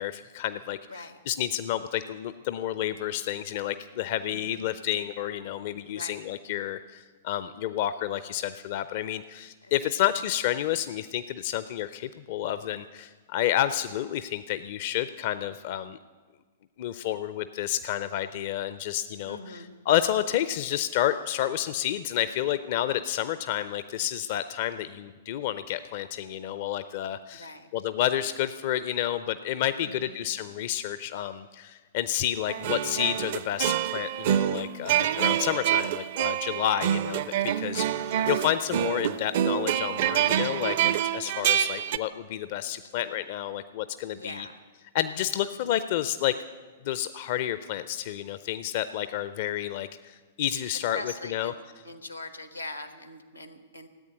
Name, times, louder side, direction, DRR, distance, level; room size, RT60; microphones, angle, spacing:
voice 1, 0.0-16.0 16.8-44.5 44.9-46.3 46.8-51.5, left 12 dB, 45° left, 13 dB, 0.5 m, -30 dB
voice 2, 4.3-4.6 5.9-6.2 9.6-9.7 19.2-19.8 27.3-27.7 29.8-30.3 36.6-36.9 41.6-41.8 44.1-44.6 50.9-51.5 51.8-53.9, left 2 dB, 90° left, 9 dB, 1.3 m, -42 dB
sound 1, 32.5-42.0, right 11 dB, 45° right, 0.5 m, -27 dB
14.5 x 8.6 x 9.9 m, 1.4 s
figure-of-eight pair, 105°, 0 cm